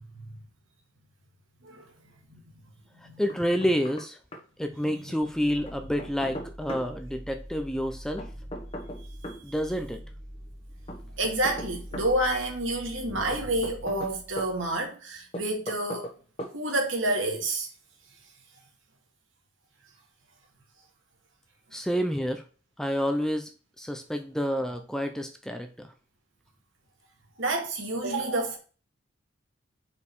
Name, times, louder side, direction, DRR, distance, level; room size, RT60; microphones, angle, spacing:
voice 1, 3.2-4.2 4.6-8.2 9.4-10.0 21.7-22.4 22.8-23.5 23.8-25.9, equal, 5° left, 0.6 m, -29 dB
Knock, 3.3-4.1 4.3-4.4 5.6-6.9 8.2-9.4 10.9-12.1 13.3-14.5 15.3-16.1 16.4-16.5, equal, 30° left, 1.4 m, -38 dB
sound 1, 5.2-14.8, equal, 35° right, 2.1 m, -44 dB
voice 2, 9.0-9.6 11.2-16.1 16.5-17.7 27.4-28.6, right 1 dB, 70° right, 2.0 m, -29 dB
5.4 x 4.9 x 4.6 m
head